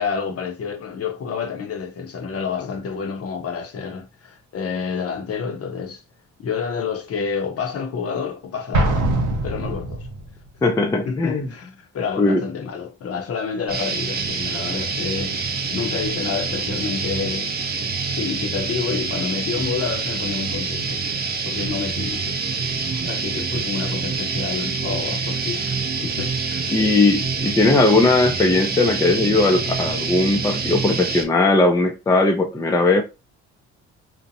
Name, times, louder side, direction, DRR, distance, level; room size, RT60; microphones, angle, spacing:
voice 1, 0.0-6.0 6.4-9.1 9.4-10.1 11.0-17.5 18.1-22.4 23.0-25.8 26.0-26.6, left 6 dB, 50° left, 0.7 m, -29 dB
Explosion, 8.7-10.3, right 1 dB, 75° right, 0.7 m, -22 dB
voice 2, 10.6-11.5 12.2-12.4 26.7-33.0, left 2 dB, 10° left, 0.4 m, -18 dB
sound 1, 13.7-31.2, right 4 dB, 30° right, 0.6 m, -26 dB
2.6 x 2.1 x 2.7 m
cardioid pair, 90°, 30 cm